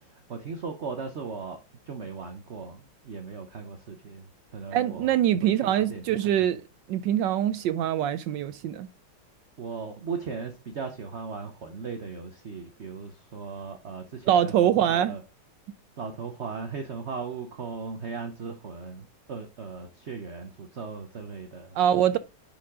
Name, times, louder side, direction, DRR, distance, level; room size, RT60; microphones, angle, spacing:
voice 1, 0.0-4.3 4.5-5.2 5.4-6.5 9.6-15.2 16.0-21.8 22.1-22.2, right 5 dB, 50° right, 0.8 m, -38 dB
voice 2, 4.7-6.6 6.9-8.9 14.3-15.2 21.7-22.2, right 10 dB, 80° right, 1.0 m, -24 dB
10.0 x 5.1 x 3.7 m
omnidirectional pair, 2.4 m